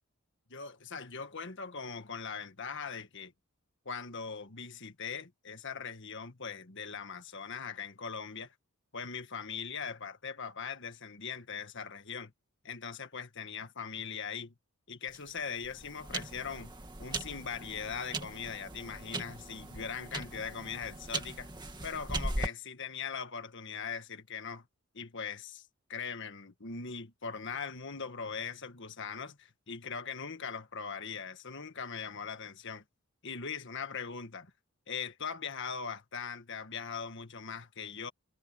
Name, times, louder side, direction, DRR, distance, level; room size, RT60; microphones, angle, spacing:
voice 1, 0.5-3.3 3.8-8.5 8.9-12.3 12.6-14.5 14.9-16.7 17.0-21.5 21.8-24.6 24.9-32.8 33.2-34.5 34.9-38.1, left 6 dB, 55° left, 1.6 m, -40 dB
sound 1, 15.1-22.5, right 2 dB, 20° right, 2.2 m, -39 dB
head